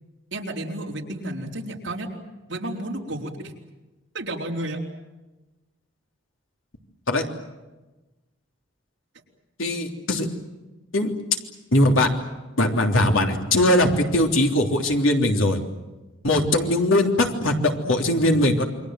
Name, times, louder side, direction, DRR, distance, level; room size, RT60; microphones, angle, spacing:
voice 1, 0.3-2.1 2.5-3.5 4.1-4.8, right 1 dB, 65° right, 0 dB, 4.4 m, -31 dB
voice 2, 9.6-10.3 10.9-11.1 11.7-12.1 12.6-15.6 16.2-18.6, left 1 dB, 90° left, 3 dB, 3.4 m, -20 dB
28.5 x 23.5 x 7.8 m, 1.1 s
head